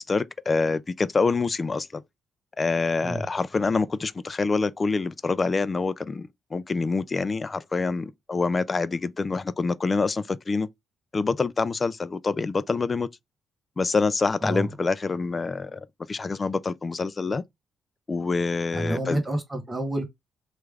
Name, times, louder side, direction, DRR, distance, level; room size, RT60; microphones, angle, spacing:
voice 1, 0.0-2.0 2.6-10.7 11.1-13.1 13.8-17.4 18.1-19.2, left 4 dB, 30° left, 0.3 m, -26 dB
voice 2, 18.7-20.0, right 1 dB, 15° right, 1.1 m, -28 dB
3.1 x 2.4 x 3.4 m
cardioid pair, 90°, 0 cm